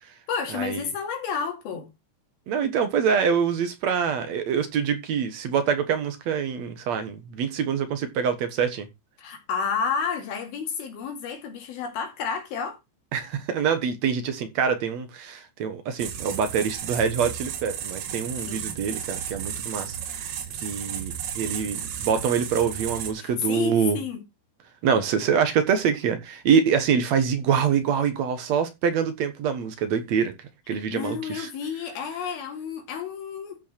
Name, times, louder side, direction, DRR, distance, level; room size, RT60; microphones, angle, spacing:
voice 1, 0.3-1.9 9.2-12.8 18.5-18.7 20.3-20.4 23.2-24.2 30.9-33.6, left 6 dB, 75° left, 4.3 m, -31 dB
voice 2, 2.5-8.9 13.1-24.0 24.8-30.3 30.7-31.5, right 7 dB, 60° right, 2.1 m, -25 dB
sound 1, 16.0-23.1, right 8 dB, 80° right, 3.4 m, -33 dB
13.5 x 5.7 x 4.3 m
omnidirectional pair, 4.4 m